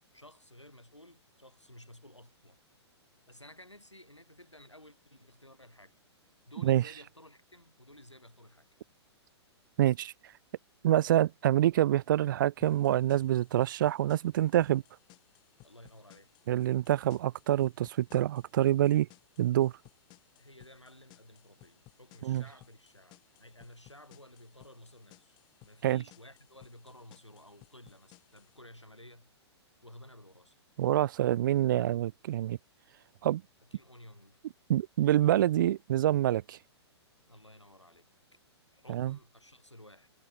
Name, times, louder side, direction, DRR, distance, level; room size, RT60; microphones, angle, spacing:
voice 1, 0.1-2.6 3.3-6.0 6.5-8.7 10.9-11.1 15.6-16.5 20.4-29.3 29.8-30.6 33.7-34.4 37.3-38.1 38.7-40.1, left 1 dB, 90° left, 7.0 m, -54 dB
voice 2, 9.8-10.1 10.8-14.8 16.5-19.1 19.4-19.7 22.2-22.4 25.8-26.0 30.8-32.6 33.2-33.4 34.7-36.6 38.9-39.1, right 13 dB, 45° right, 0.4 m, -26 dB
sound 1, 12.6-28.6, left 23 dB, 30° left, 3.0 m, -61 dB
figure-of-eight pair, 110°, 15 cm